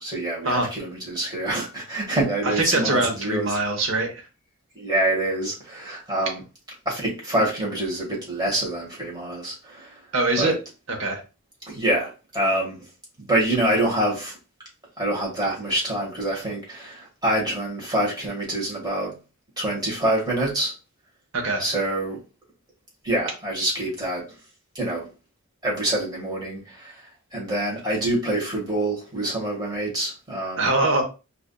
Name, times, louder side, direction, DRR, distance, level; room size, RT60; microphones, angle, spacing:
voice 1, 0.0-3.6 4.7-6.4 6.8-10.0 10.3-10.6 11.7-12.8 13.3-14.3 15.0-19.1 19.6-20.7 21.6-22.2 23.0-24.2 24.7-25.1 25.6-27.0 27.3-30.7, right 1 dB, 20° right, -3 dB, 1.6 m, -26 dB
voice 2, 2.4-4.2 10.1-10.5 10.9-11.2 21.3-21.6 30.6-31.0, right 2 dB, 65° right, 2 dB, 1.1 m, -23 dB
4.8 x 2.7 x 2.2 m, 0.31 s
head